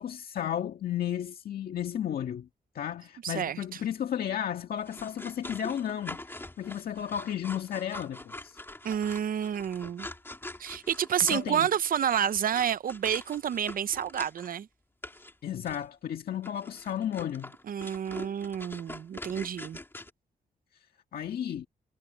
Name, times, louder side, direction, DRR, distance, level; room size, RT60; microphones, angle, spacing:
voice 1, 0.0-2.5 2.7-8.6 11.3-11.7 15.4-17.5 21.1-21.7, left 10 dB, 75° left, 1.7 m, -33 dB
voice 2, 3.2-3.8 8.8-10.1 10.6-14.7 17.7-19.8, right 9 dB, 65° right, 0.7 m, -29 dB
sound 1, 4.8-14.5 15.0-15.3 15.7-15.9 16.4-20.1, left 2 dB, 15° left, 2.6 m, -44 dB
cardioid pair, 85°, 16 cm